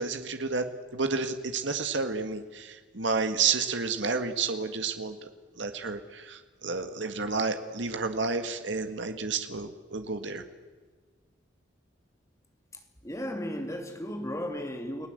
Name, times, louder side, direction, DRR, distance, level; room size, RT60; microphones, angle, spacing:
voice 1, 0.0-5.2 5.6-10.4, right 4 dB, 75° right, 1.8 m, -30 dB
voice 2, 13.0-15.1, equal, 15° left, 3.0 m, -35 dB
30.0 x 18.0 x 8.0 m
head